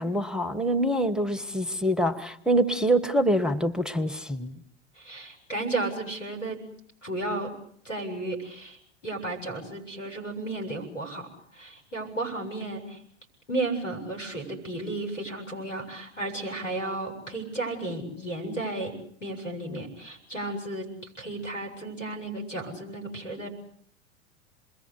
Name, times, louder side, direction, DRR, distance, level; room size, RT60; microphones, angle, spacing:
voice 1, 0.0-4.5, right 1 dB, ahead, 1.3 m, -25 dB
voice 2, 4.9-6.6 7.0-7.5 7.8-8.8 9.0-11.3 11.5-13.0 13.5-18.9 19.2-23.5, right 2 dB, 90° left, 7.5 m, -33 dB
28.5 x 22.0 x 8.3 m
figure-of-eight pair, 90°, 37 cm